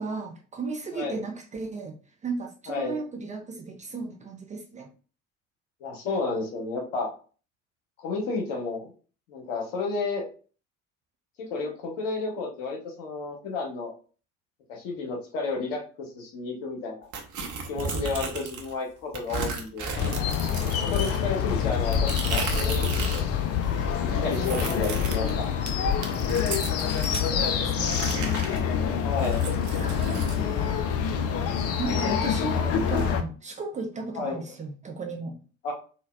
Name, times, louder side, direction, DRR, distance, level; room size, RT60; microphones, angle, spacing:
voice 1, 0.0-2.0 2.2-4.9 24.0-24.6 27.2-28.6 29.7-31.0 31.8-35.4, right 4 dB, 20° right, 0.4 m, -36 dB
voice 2, 5.8-7.1 8.0-8.9 9.3-10.2 11.4-13.9 14.7-17.1 17.7-19.9 20.7-23.2 24.0-25.5 29.0-29.5 31.8-32.0 34.2-34.4 35.6-35.7, left 3 dB, 70° left, 0.9 m, -32 dB
sound 1, 17.1-18.7 19.1-23.3 23.6-27.3 27.8-30.4, right 2 dB, 45° right, 0.7 m, -33 dB
sound 2, 20.0-33.2, left 8 dB, 40° left, 0.5 m, -26 dB
3.8 x 2.1 x 2.2 m
figure-of-eight pair, 55°, 40 cm